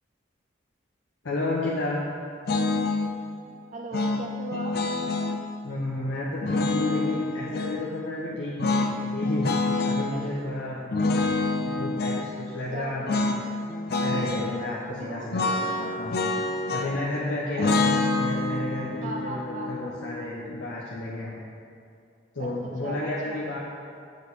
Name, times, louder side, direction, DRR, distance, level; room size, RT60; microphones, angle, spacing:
voice 1, 1.2-2.0 5.6-9.6 9.8-11.1 11.6-13.5 14.0-16.4 16.7-17.9 18.2-21.4 22.3-23.6, left 2 dB, 80° left, -7 dB, 1.1 m, -32 dB
sound 1, 2.5-3.1 3.9-5.4 6.4-7.8 8.6-10.1 10.9-12.3 13.1-13.4 13.7-14.5 15.3-17.1 17.6-20.7, left 3 dB, 55° left, 0.5 m, -27 dB
voice 2, 3.7-4.7 8.6-8.7 10.1-10.4 12.7-13.1 15.0-15.3 17.9-18.0 19.0-19.9 22.4-22.5 22.8-23.4, right 2 dB, 40° right, 1 dB, 0.5 m, -37 dB
8.8 x 6.8 x 4.2 m, 2.4 s
head